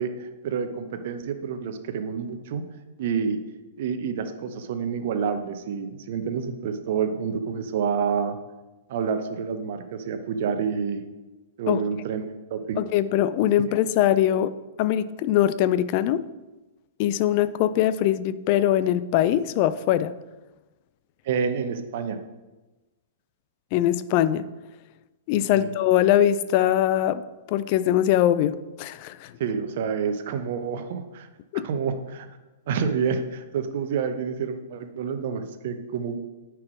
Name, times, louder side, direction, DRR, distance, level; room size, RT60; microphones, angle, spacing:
voice 1, 0.0-2.6 3.0-3.4 3.8-8.4 8.9-11.0 11.6-12.8 21.2-22.2 25.5-25.7 29.4-31.3 31.6-32.3 32.7-36.3, right 6 dB, 50° right, 8 dB, 0.8 m, -28 dB
voice 2, 12.8-14.5 14.8-16.2 17.0-20.1 23.7-24.5 25.3-29.3 31.5-31.7, left 11 dB, 40° left, 15 dB, 0.4 m, -22 dB
9.5 x 4.7 x 4.8 m, 1.1 s
figure-of-eight pair, 110°, 0 cm